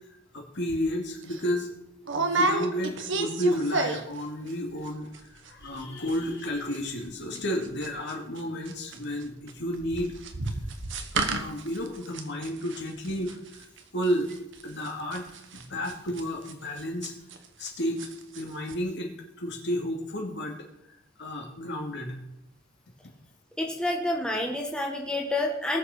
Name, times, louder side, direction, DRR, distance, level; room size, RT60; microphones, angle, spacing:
voice 1, 0.3-1.7 2.1-5.1 5.4-10.1 11.2-13.6 13.9-14.3 14.6-15.2 15.5-17.1 17.6-18.1 18.3-20.6 21.2-22.2, equal, 60° left, 1 dB, 2.5 m, -31 dB
sound 1, 0.7-0.9 1.2-1.4 2.1-4.2 4.5-4.9 5.1-5.2 5.5-5.8 6.1-17.7 18.0-18.4 18.7-18.8, right 3 dB, 65° right, 1.3 m, -32 dB
voice 2, 23.6-25.8, left 1 dB, 5° left, 0 dB, 1.5 m, -28 dB
19.0 x 7.2 x 5.0 m, 0.82 s
head